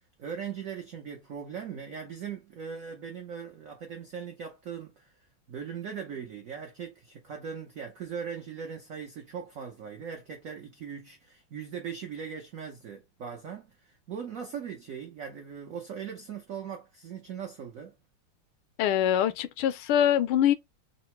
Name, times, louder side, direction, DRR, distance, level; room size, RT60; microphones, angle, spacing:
voice 1, 0.2-5.1 5.5-17.9, right 7 dB, 85° right, 0.7 m, -39 dB
voice 2, 18.8-20.5, left 10 dB, 85° left, 1.5 m, -24 dB
3.8 x 2.1 x 4.3 m
omnidirectional pair, 2.3 m